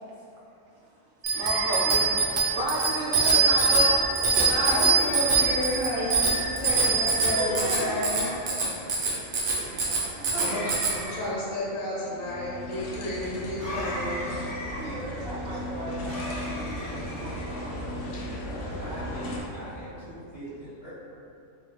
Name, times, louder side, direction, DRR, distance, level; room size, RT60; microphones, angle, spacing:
Bicycle bell, 1.2-10.9, right 4 dB, 55° right, 0.6 m, -24 dB
sound 1, 1.3-2.3 4.6-5.5 7.4-8.4 10.3-11.4 13.6-14.8 16.1-17.5, left 1 dB, 5° left, 1.0 m, -38 dB
voice 1, 1.3-4.9 9.5-9.9 14.8-17.7, right 1 dB, 75° right, -5 dB, 1.1 m, -33 dB
voice 2, 4.4-8.4 10.4-10.6 10.9-14.3, left 1 dB, 80° left, -6 dB, 1.2 m, -31 dB
voice 3, 6.8-8.1 8.4-8.9 10.0-10.5 18.8-20.9, right 1 dB, 15° right, -15 dB, 1.4 m, -37 dB
sound 2, 12.0-19.4, left 1 dB, 60° left, 0.6 m, -36 dB
3.5 x 2.7 x 3.1 m, 2.7 s
omnidirectional pair, 1.4 m